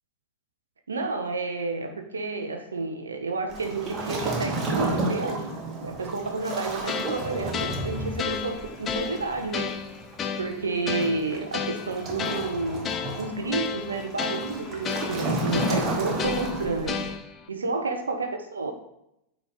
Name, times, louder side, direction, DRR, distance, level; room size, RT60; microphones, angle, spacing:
voice 1, 0.9-5.5 5.8-9.8 10.4-17.1 17.5-18.7, right 3 dB, 75° right, 5 dB, 0.8 m, -30 dB
Waves surf, 3.5-17.2, right 2 dB, 30° right, 1.4 m, -32 dB
sound 1, 6.9-17.5, left 7 dB, 25° left, 0.6 m, -33 dB
8.6 x 3.7 x 4.9 m, 0.80 s
figure-of-eight pair, 90°, 0 cm